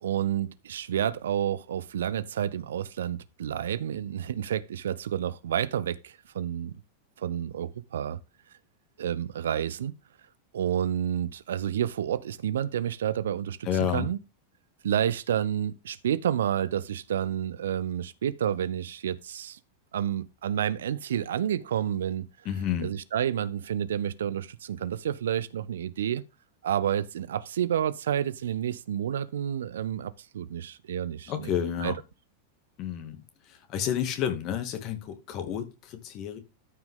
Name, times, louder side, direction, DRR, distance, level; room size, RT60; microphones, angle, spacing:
voice 1, 0.0-6.8 7.2-8.2 9.0-9.9 10.5-13.6 13.9-14.2 14.8-19.6 19.9-22.2 22.8-26.2 26.6-31.5 31.8-31.9, right 10 dB, 65° right, 0.6 m, -29 dB
voice 2, 13.6-14.1 22.4-22.9 31.3-31.9 32.8-33.2 33.5-36.4, left 9 dB, 40° left, 2.2 m, -30 dB
13.0 x 5.8 x 3.8 m
figure-of-eight pair, 90°, 0 cm